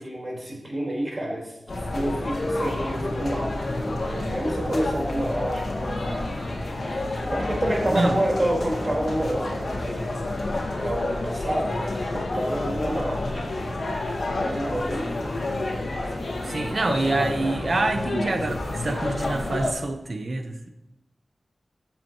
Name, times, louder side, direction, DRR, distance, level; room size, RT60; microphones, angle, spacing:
voice 1, 0.0-1.5 1.9-6.3 7.3-10.1 10.7-13.7 14.3-15.3 16.4-16.7, right 1 dB, 40° right, -3 dB, 4.3 m, -29 dB
sound 1, 1.7-19.7, left 2 dB, 65° left, 1.9 m, -29 dB
voice 2, 7.9-8.2 16.4-20.7, right 2 dB, 55° right, 7 dB, 1.0 m, -26 dB
15.0 x 7.5 x 3.1 m, 0.94 s
wide cardioid pair, 65°, 0 cm